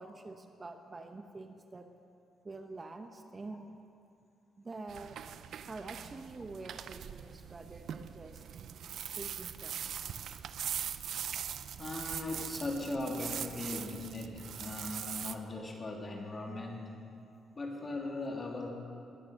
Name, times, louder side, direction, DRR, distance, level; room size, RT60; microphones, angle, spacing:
voice 1, 0.0-1.9 2.4-3.8 4.6-5.2 5.7-8.4 9.1-10.2, right 3 dB, 30° right, 6 dB, 0.9 m, -46 dB
sound 1, 4.9-15.3, right 9 dB, 65° right, 0.5 m, -41 dB
voice 2, 11.8-16.9 17.5-18.7, left 2 dB, 30° left, 0 dB, 2.8 m, -39 dB
21.0 x 9.0 x 6.5 m, 2.7 s
cardioid pair, 90°, 0 cm